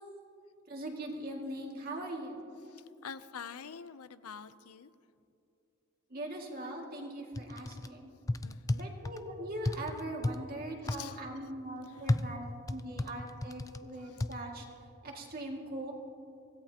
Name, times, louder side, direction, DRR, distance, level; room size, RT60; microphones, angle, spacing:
voice 1, 0.7-2.4 6.1-8.1 8.8-14.7 15.0-15.9, right 1 dB, 45° right, 0 dB, 2.1 m, -41 dB
voice 2, 2.7-4.9 8.4-8.9 10.8-11.2 11.8-12.2 14.0-14.2, left 7 dB, 90° left, 13 dB, 0.6 m, -47 dB
sound 1, 7.3-7.9 8.3-9.2 9.7-10.4 10.9-11.0 12.1-13.8 14.2-14.3, left 2 dB, 15° left, 0.3 m, -32 dB
24.5 x 17.0 x 2.9 m, 2.6 s
head